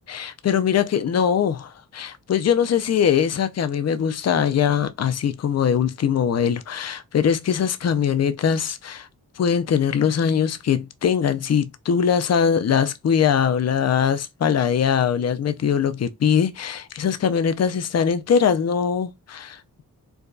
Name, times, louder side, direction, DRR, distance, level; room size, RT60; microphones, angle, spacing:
voice 1, 0.1-9.1 9.4-19.8, left 7 dB, 45° left, 0.4 m, -22 dB
4.6 x 2.2 x 2.5 m
wide cardioid pair, 90°, 37 cm